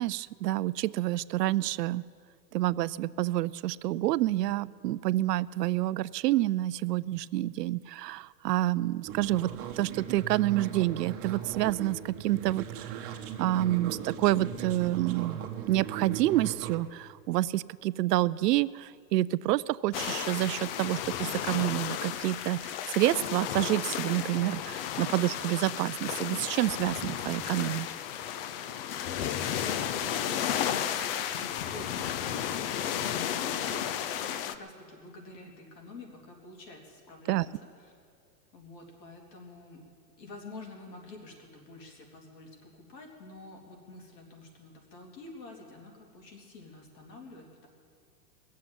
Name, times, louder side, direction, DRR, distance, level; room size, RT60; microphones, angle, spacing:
voice 1, 0.0-2.0 2.5-15.4 15.7-27.9 37.3-37.4, right 15 dB, 70° right, 18 dB, 0.5 m, -28 dB
sound 1, 9.1-16.8, right 9 dB, 25° right, 1.2 m, -38 dB
sound 2, 19.9-34.5, left 10 dB, 35° left, 0.5 m, -33 dB
voice 2, 28.7-37.9 38.5-39.9 40.2-47.7, left 2 dB, 80° left, 1 dB, 3.7 m, -48 dB
20.5 x 7.6 x 9.3 m, 2.2 s
hypercardioid pair, 145°, 50 cm